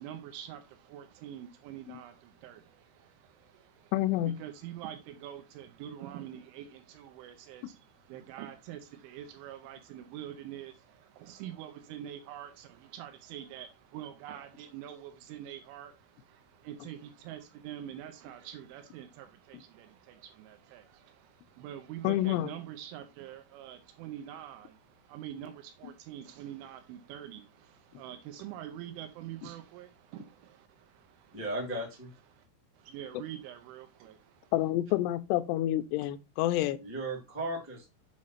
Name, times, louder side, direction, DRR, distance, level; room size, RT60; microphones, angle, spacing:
voice 1, 0.0-3.9 4.2-31.4 32.3-32.5 32.7-34.5, right 11 dB, 80° right, 3.1 m, -45 dB
voice 2, 3.9-4.4 22.0-22.5 34.5-36.8, left 14 dB, 85° left, 2.5 m, -28 dB
voice 3, 31.3-32.1 36.8-37.9, right 1 dB, 10° right, 0.7 m, -36 dB
7.5 x 3.1 x 5.8 m
omnidirectional pair, 5.5 m